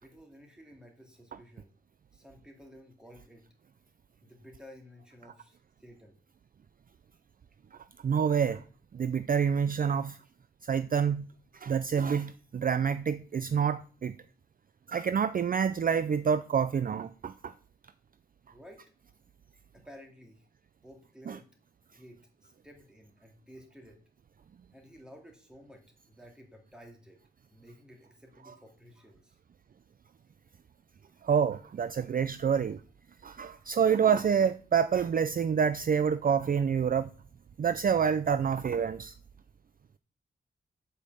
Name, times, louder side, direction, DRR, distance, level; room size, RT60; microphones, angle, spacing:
voice 1, 0.0-1.7 2.1-3.5 4.2-6.2 18.5-18.9 19.7-20.5 20.8-21.5 21.9-24.0 24.7-27.2 27.5-29.4, equal, 5° right, 2.4 m, -53 dB
voice 2, 7.7-8.6 8.9-10.2 10.6-11.3 11.5-14.2 14.9-17.5 21.3-21.4 28.5-28.6 31.2-32.8 33.2-37.1 37.6-39.1, right 7 dB, 45° right, 0.4 m, -27 dB
8.1 x 5.6 x 7.7 m
wide cardioid pair, 160°, 21 cm